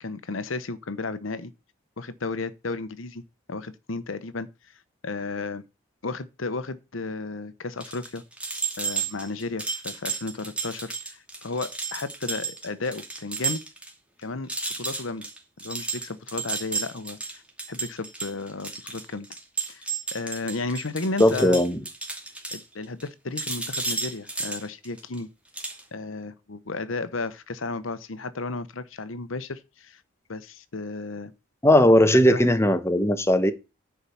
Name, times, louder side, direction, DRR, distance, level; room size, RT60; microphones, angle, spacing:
voice 1, 0.0-1.5 2.0-3.2 3.5-4.5 5.0-5.6 6.0-8.2 8.8-13.6 14.2-14.5 14.7-15.3 15.6-17.4 17.7-19.3 19.7-19.9 20.1-21.6 22.5-25.3 25.9-30.0 30.3-31.3 32.3-32.5, left 3 dB, 85° left, 1.0 m, -33 dB
sound 1, 7.8-13.9 14.2-14.3 14.5-23.1 23.4-25.2 25.5-25.8, right 4 dB, 5° right, 2.5 m, -32 dB
voice 2, 21.2-21.8 31.6-33.5, left 1 dB, 15° left, 1.0 m, -18 dB
10.0 x 4.8 x 7.0 m
head